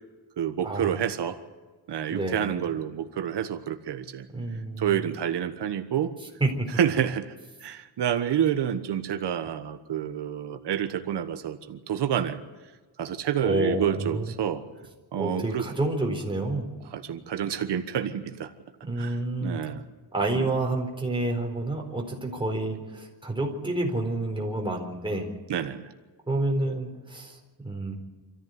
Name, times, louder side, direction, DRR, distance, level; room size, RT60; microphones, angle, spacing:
voice 1, 0.4-1.4 1.9-4.3 4.8-6.1 6.8-7.3 7.6-12.4 13.0-14.6 15.1-15.6 16.9-18.5 19.0-19.8 20.3-20.5 25.5-25.9, right 9 dB, 90° right, 8 dB, 1.4 m, -28 dB
voice 2, 2.1-2.5 4.3-5.1 6.4-6.7 13.4-14.3 15.2-16.7 18.8-19.6 20.1-25.3 26.3-28.0, right 2 dB, 10° right, 1 dB, 4.4 m, -29 dB
26.0 x 14.5 x 9.4 m, 1.3 s
wide cardioid pair, 135°, 40 cm